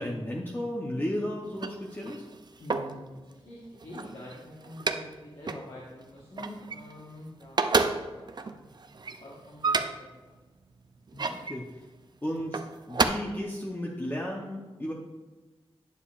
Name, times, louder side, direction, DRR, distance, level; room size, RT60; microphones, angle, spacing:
voice 1, 0.0-2.2 11.1-11.7 12.2-12.6 12.9-14.9, equal, 20° left, -3 dB, 0.8 m, -34 dB
sound 1, 1.4-3.0 3.6-5.2 5.5-5.7 6.0-7.1 7.4-10.2 10.8-11.6 12.4-13.1, right 4 dB, 45° right, 0.4 m, -30 dB
voice 2, 2.6-7.8 8.2-8.7 9.2-10.3, left 1 dB, 60° left, -6 dB, 1.4 m, -46 dB
9.2 x 6.7 x 2.5 m, 1.2 s
wide cardioid pair, 105°, 10 cm